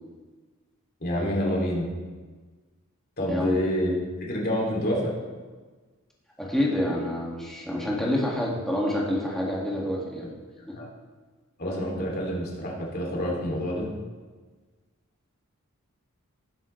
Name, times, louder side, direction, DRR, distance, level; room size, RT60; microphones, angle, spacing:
voice 1, 1.0-1.9 3.2-3.9 4.3-5.1 10.7-10.9 11.6-13.9, equal, 45° left, -2 dB, 2.8 m, -27 dB
voice 2, 3.3-3.6 6.4-10.3 10.7-10.8, left 1 dB, ahead, -4 dB, 2.0 m, -27 dB
18.0 x 7.4 x 3.3 m, 1.4 s
head